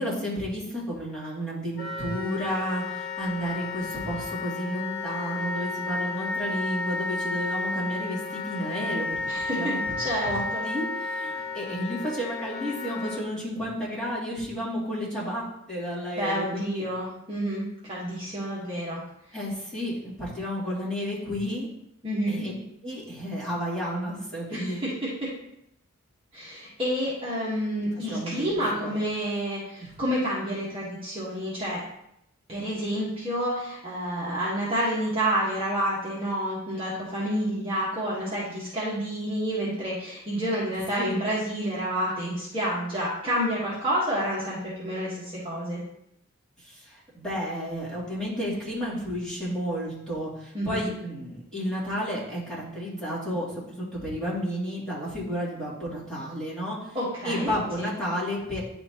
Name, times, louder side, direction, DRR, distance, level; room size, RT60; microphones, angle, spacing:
voice 1, 0.0-9.2 9.6-9.9 10.2-16.8 19.3-21.7 22.3-22.5 22.8-24.8 28.0-28.5 28.8-28.9 41.0-41.2 46.6-57.0 57.2-58.6, equal, 5° left, -9 dB, 2.5 m, -32 dB
Wind instrument woodwind instrument, 1.8-13.2, left 3 dB, 45° left, 0.9 m, -32 dB
voice 2, 9.3-9.7 10.0-10.6 16.2-19.0 22.0-22.4 24.5-24.9 25.2-25.3 26.3-31.8 32.5-45.8 50.5-50.8 56.9-57.9, equal, 25° right, -8 dB, 1.4 m, -29 dB
9.4 x 4.3 x 2.9 m, 0.78 s
head